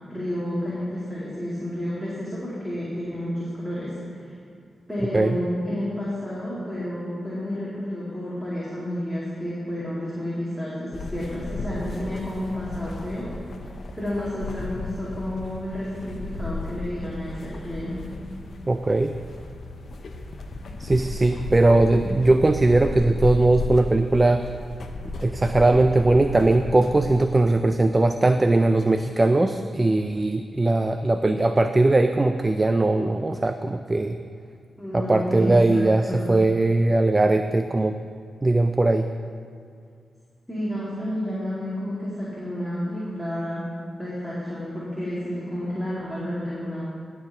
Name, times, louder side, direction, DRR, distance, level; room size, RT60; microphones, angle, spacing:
voice 1, 0.1-4.3 4.9-13.3 13.9-18.0 34.8-36.4 40.5-43.7 44.0-46.8, left 1 dB, 5° left, -9 dB, 2.5 m, -30 dB
sound 1, 10.9-27.2, left 2 dB, 65° left, 0.8 m, -35 dB
voice 2, 18.7-19.2 20.8-24.4 25.2-34.2 34.9-38.0 38.4-39.1, right 2 dB, 25° right, 8 dB, 0.4 m, -20 dB
12.0 x 4.5 x 7.0 m, 2.3 s
cardioid pair, 65°, 0 cm